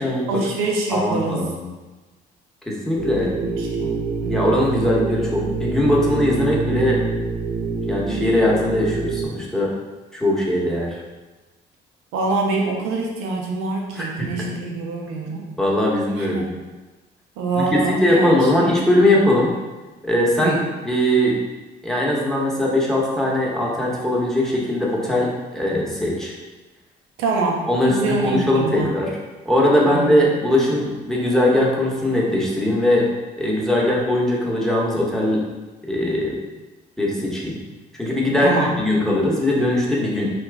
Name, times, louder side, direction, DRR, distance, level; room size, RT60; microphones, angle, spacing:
voice 1, 0.3-1.4 3.2-4.0 4.2-4.6 12.1-15.5 16.2-16.5 17.4-18.7 20.4-20.6 27.2-28.9 29.9-30.2 38.4-38.7, right 3 dB, 80° right, 0 dB, 0.6 m, -25 dB
voice 2, 0.9-1.7 2.7-3.3 4.3-7.0 7.9-9.7 10.1-11.0 13.9-14.3 15.6-16.5 17.5-19.5 20.0-20.6 20.8-21.4 21.8-26.3 27.7-29.1 29.4-33.1 33.4-35.4 35.8-36.4 37.0-37.6 37.9-40.3, left 1 dB, ahead, -4 dB, 1.0 m, -20 dB
sound 1, 3.0-9.3, right 4 dB, 40° right, 0.8 m, -26 dB
2.9 x 2.4 x 3.4 m, 1.2 s
supercardioid pair, 60°, 21 cm